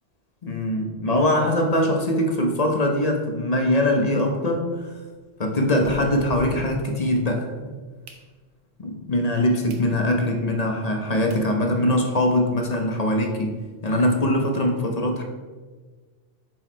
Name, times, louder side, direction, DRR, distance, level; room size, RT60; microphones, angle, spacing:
voice 1, 0.4-4.9 5.4-7.5 8.8-15.2, left 1 dB, 35° left, 2 dB, 0.9 m, -22 dB
sound 1, 3.5-7.4 7.8-8.8 9.3-9.4 9.7-9.9 10.3-10.4 11.0-11.1 11.3-11.5 11.9-12.0 12.2-12.3 12.6-12.7 13.0-14.2, right 2 dB, 80° right, 1.2 m, -42 dB
7.8 x 4.7 x 4.4 m, 1.4 s
omnidirectional pair, 1.2 m